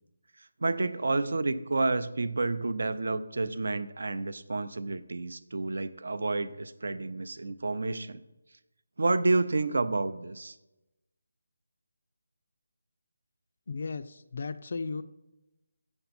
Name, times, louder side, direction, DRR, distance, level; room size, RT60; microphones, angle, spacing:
voice 1, 0.6-8.2 9.0-10.6, right 3 dB, 60° right, 12 dB, 0.6 m, -29 dB
voice 2, 13.7-15.0, left 4 dB, 40° left, 11 dB, 0.4 m, -35 dB
7.7 x 7.0 x 4.3 m, 0.96 s
figure-of-eight pair, 180°, 0 cm